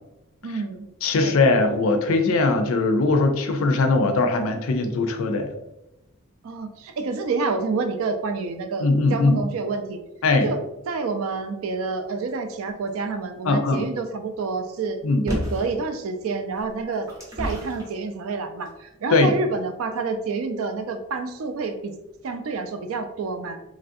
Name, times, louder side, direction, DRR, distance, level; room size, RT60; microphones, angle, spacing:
voice 1, 0.4-0.9 1.2-1.3 6.4-10.0 10.4-10.6 10.9-15.0 15.2-17.1 17.4-21.9 22.2-23.6, right 4 dB, 75° right, 7 dB, 0.4 m, -28 dB
voice 2, 1.0-5.5 8.8-9.4 10.2-10.5 13.5-13.9 15.0-15.3 19.1-19.3, left 3 dB, 70° left, 6 dB, 0.4 m, -20 dB
sound 1, 15.3-15.8 16.5-17.9 18.7-18.8, equal, 15° right, 0.7 m, -30 dB
3.2 x 2.4 x 2.5 m, 0.92 s
head